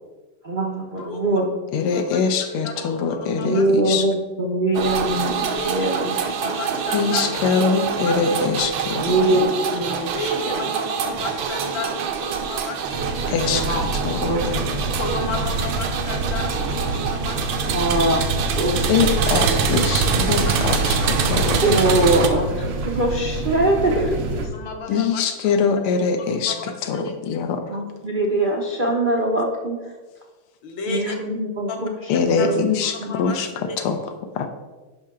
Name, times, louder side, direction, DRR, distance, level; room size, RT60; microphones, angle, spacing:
voice 1, 0.4-1.5 3.4-6.2 9.0-10.1 13.5-13.9 14.2-14.4 17.6-19.1 19.6-20.1 21.6-24.5 24.9-25.0 27.7-29.9 30.9-31.9 32.3-32.7 33.0-33.1, right 1 dB, 55° right, -2 dB, 0.5 m, -23 dB
voice 2, 1.0-1.5 1.9-2.1 2.6-3.7 5.5-7.5 7.8-8.2 10.0-13.4 14.7-17.8 19.3-19.9 20.3-21.9 24.5-25.2 26.5-27.4 30.6-31.2 31.7-31.8 32.4-32.5 32.8-33.8, left 3 dB, 65° left, 3 dB, 1.6 m, -33 dB
voice 3, 1.7-4.0 6.9-9.5 13.3-14.7 18.9-21.8 24.9-27.8 32.1-33.5 33.8-34.5, left 5 dB, 80° left, 6 dB, 1.7 m, -23 dB
sound 1, 4.7-22.3, right 6 dB, 70° right, 1.4 m, -25 dB
sound 2, 12.9-24.5, right 2 dB, 85° right, 2.0 m, -27 dB
10.0 x 5.6 x 3.7 m, 1.3 s
omnidirectional pair, 2.4 m